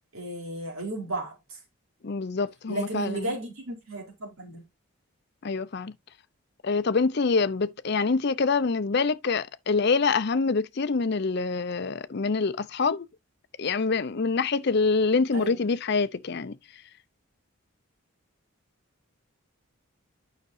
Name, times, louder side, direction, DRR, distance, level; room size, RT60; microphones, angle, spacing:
voice 1, 0.1-1.6 2.7-4.7 15.3-15.6, right 2 dB, 75° right, 3.9 m, -34 dB
voice 2, 2.0-3.3 5.4-5.9 6.6-13.1 13.6-16.6, left 4 dB, 50° left, 0.5 m, -25 dB
9.5 x 5.8 x 2.6 m
head